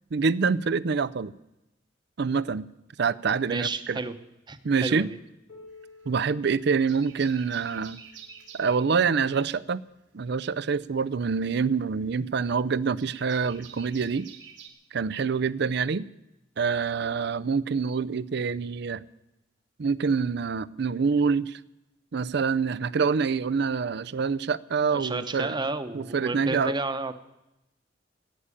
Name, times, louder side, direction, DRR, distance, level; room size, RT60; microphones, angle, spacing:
voice 1, 0.1-1.3 2.2-2.6 3.0-4.0 4.6-5.1 6.1-8.0 8.5-9.8 10.1-14.3 14.9-16.0 16.6-19.0 19.8-21.6 22.1-25.6 25.9-26.7, right 5 dB, 65° right, 18 dB, 0.5 m, -26 dB
voice 2, 3.5-4.1 4.5-5.2 24.8-27.3, right 3 dB, 25° right, 10 dB, 0.9 m, -32 dB
Piano, 5.5-10.8 11.7-11.8 12.3-12.4 13.2-13.3 14.3-14.4, left 3 dB, 90° left, 5.0 m, -55 dB
sound 1, 5.7-6.4 6.7-8.9 10.5-14.7, right 7 dB, 90° right, 2.6 m, -48 dB
16.0 x 8.8 x 8.4 m, 0.91 s
head